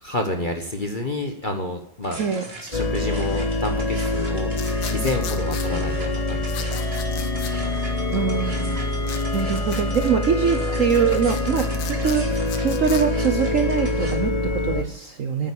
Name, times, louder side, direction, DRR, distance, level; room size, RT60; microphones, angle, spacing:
voice 1, 0.0-2.3 2.6-6.7, left 2 dB, 30° left, 4 dB, 1.0 m, -29 dB
sound 1, 2.0-14.1, right 2 dB, 30° right, 2.3 m, -39 dB
sound 2, 2.7-14.8, left 2 dB, 50° left, 0.4 m, -25 dB
sound 3, 4.5-5.7 6.5-7.5 9.0-10.1 10.7-13.0, left 8 dB, 80° left, 1.8 m, -37 dB
voice 2, 8.1-8.8 9.3-15.5, right 7 dB, 55° right, 6 dB, 1.0 m, -23 dB
9.1 x 8.9 x 8.6 m, 0.70 s
omnidirectional pair, 2.1 m